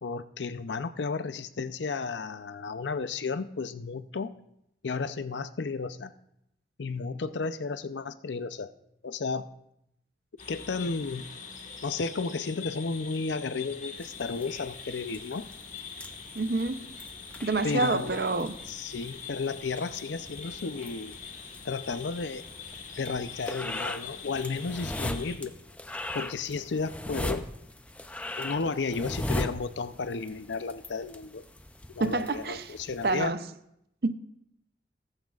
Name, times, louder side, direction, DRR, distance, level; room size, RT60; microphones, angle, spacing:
voice 1, 0.0-4.3 4.8-6.1 6.8-8.7 9.0-9.4 10.5-11.3 11.8-15.5 17.6-18.3 18.7-21.2 21.6-22.5 23.0-25.6 26.1-27.5 28.4-31.4 31.9-33.4, left 4 dB, 85° left, 0.6 m, -33 dB
sound 1, 10.4-25.4, left 6 dB, 45° left, 1.4 m, -44 dB
sound 2, 14.0-33.3, left 1 dB, 10° left, 0.4 m, -40 dB
voice 2, 16.3-16.9 17.4-18.6 32.0-32.8 33.0-33.4 34.0-34.1, right 3 dB, 60° right, 0.6 m, -28 dB
16.0 x 14.5 x 2.4 m
head